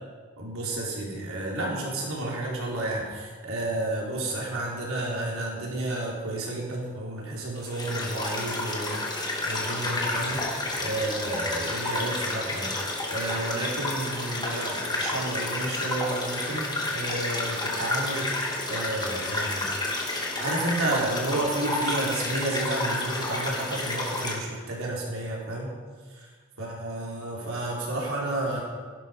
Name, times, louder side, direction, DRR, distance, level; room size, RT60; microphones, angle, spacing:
voice 1, 0.4-10.5 10.8-12.7 13.1-18.3 18.7-19.7 20.0-25.7 26.6-28.6, right 2 dB, 65° right, -3 dB, 4.5 m, -31 dB
sound 1, 7.6-24.3, left 2 dB, 20° left, 2.4 m, -30 dB
16.5 x 12.0 x 5.5 m, 1.5 s
head